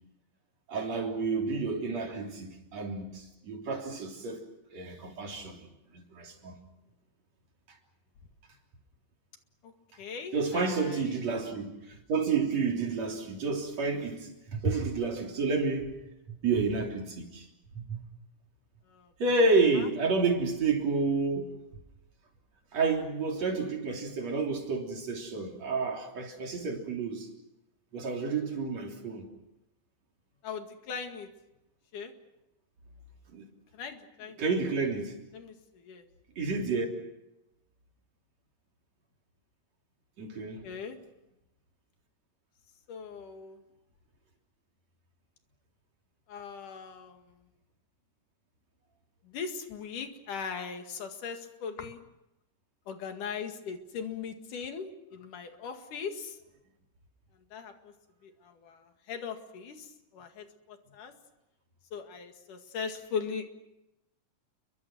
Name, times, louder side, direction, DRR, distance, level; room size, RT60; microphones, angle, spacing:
voice 1, 0.7-4.4 4.7-5.6 5.9-6.6 10.3-16.0 16.3-17.5 17.7-18.0 19.2-21.5 22.7-27.3 27.9-29.3 33.3-33.5 34.4-35.2 36.4-36.9 40.2-40.6, right 4 dB, 55° right, 4.6 m, -30 dB
voice 2, 10.0-11.0 18.9-19.1 19.8-19.9 30.4-31.3 31.9-32.1 33.7-34.4 35.3-36.0 40.4-41.0 42.9-43.6 46.3-47.4 49.3-52.0 52.9-56.4 57.5-57.9 58.2-61.1 61.9-63.5, left 6 dB, 80° left, 3.6 m, -39 dB
29.5 x 23.5 x 6.2 m
omnidirectional pair, 3.6 m